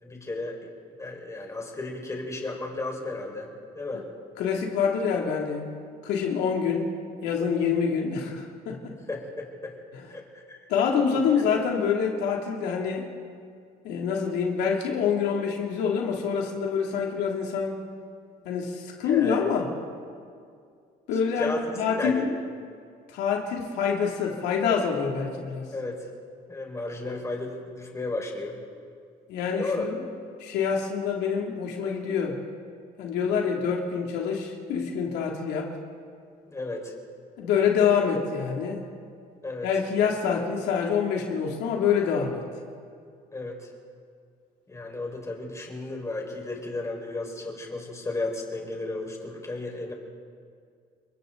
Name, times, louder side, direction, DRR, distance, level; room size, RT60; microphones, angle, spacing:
voice 1, 0.0-0.6 1.0-4.0 9.1-9.7 10.1-10.6 11.1-11.2 19.0-19.5 21.4-21.6 22.0-22.3 25.7-26.1 26.5-28.6 29.6-29.9 36.5-36.9 39.4-39.7 40.3-40.4 43.3-43.7 44.7-49.9, left 2 dB, 20° left, 0 dB, 5.1 m, -34 dB
voice 2, 4.4-5.7 6.0-6.9 7.2-8.9 10.7-13.1 13.8-17.8 18.4-19.7 21.1-22.3 23.1-25.7 29.3-29.9 30.4-32.4 33.0-35.8 37.4-38.8 39.6-42.4, left 6 dB, 85° left, 0 dB, 2.8 m, -26 dB
30.0 x 23.0 x 4.0 m, 2.2 s
cardioid pair, 110°, 17 cm